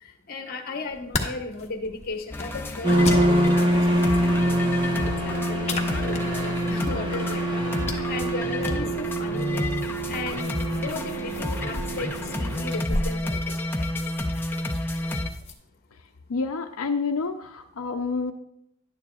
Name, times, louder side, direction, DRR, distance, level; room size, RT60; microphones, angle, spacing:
voice 1, 0.0-7.6 8.1-9.7 10.1-13.9, left 3 dB, 45° left, 5 dB, 1.1 m, -36 dB
sound 1, 0.9-15.5, left 2 dB, 30° left, 1.0 m, -37 dB
sound 2, 2.3-15.3, left 1 dB, 10° left, 0.5 m, -31 dB
sound 3, 2.8-12.8, right 1 dB, 20° right, 1.1 m, -25 dB
voice 2, 16.3-18.3, left 4 dB, 85° left, 5 dB, 0.5 m, -28 dB
11.5 x 9.4 x 2.3 m, 0.76 s
head